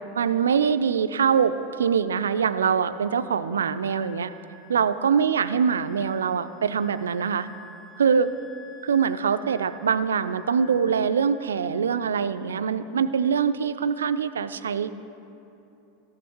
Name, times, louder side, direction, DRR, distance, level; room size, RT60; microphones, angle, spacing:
voice 1, 0.1-4.3 4.7-7.5 8.0-8.3 8.8-14.9, right 6 dB, 75° right, 13 dB, 0.3 m, -23 dB
Wind instrument woodwind instrument, 3.8-12.1, left 3 dB, 5° left, 1.1 m, -51 dB
13.5 x 9.7 x 3.1 m, 2.9 s
figure-of-eight pair, 85°, 0 cm